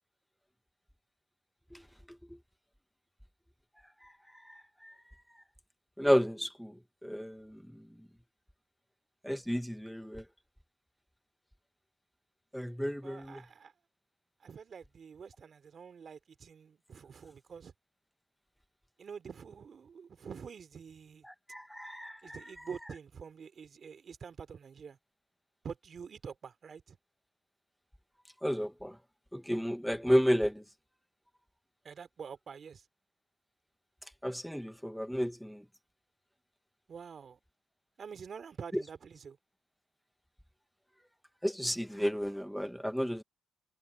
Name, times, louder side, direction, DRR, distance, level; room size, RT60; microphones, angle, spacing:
voice 1, 4.4-4.9 6.0-6.7 7.0-7.6 9.2-10.2 12.5-13.4 21.3-22.4 28.4-29.0 29.3-30.6 34.2-35.6 38.7-38.8 41.4-43.2, equal, ahead, 0.6 m, -32 dB
voice 2, 13.0-13.7 14.4-17.7 19.0-21.3 22.2-25.0 25.6-27.0 31.8-32.8 36.9-37.4 38.0-39.4, right 6 dB, 50° right, 3.0 m, -47 dB
cardioid pair, 90°, 0 cm